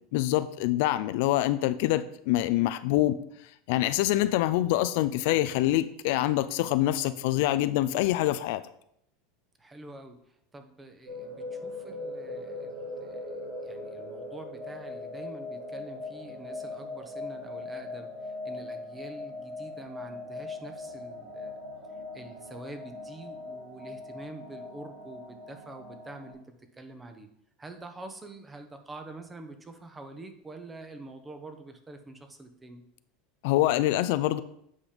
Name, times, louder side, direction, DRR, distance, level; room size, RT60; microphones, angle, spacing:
voice 1, 0.1-3.2 3.7-8.6 33.4-34.4, left 15 dB, 70° left, 13 dB, 0.4 m, -25 dB
voice 2, 9.6-13.4 13.6-21.6 21.9-27.3 27.6-32.8, right 2 dB, 15° right, 7 dB, 1.1 m, -46 dB
sound 1, 11.1-26.3, left 2 dB, 80° right, 3.0 m, -40 dB
8.5 x 5.2 x 5.1 m, 0.74 s
supercardioid pair, 125°, 0 cm